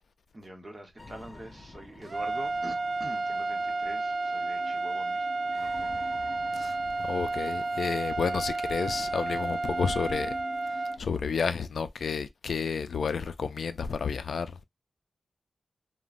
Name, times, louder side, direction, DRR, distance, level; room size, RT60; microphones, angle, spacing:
voice 1, 0.3-6.3, right 1 dB, 25° right, 0.9 m, -45 dB
sound 1, 1.0-11.0, left 2 dB, 30° left, 0.5 m, -49 dB
sound 2, 2.0-11.0, right 2 dB, 45° right, 0.4 m, -31 dB
voice 2, 6.5-10.3 10.7-14.6, left 5 dB, 85° left, 0.3 m, -31 dB
3.0 x 2.1 x 2.4 m
wide cardioid pair, 140°, 0 cm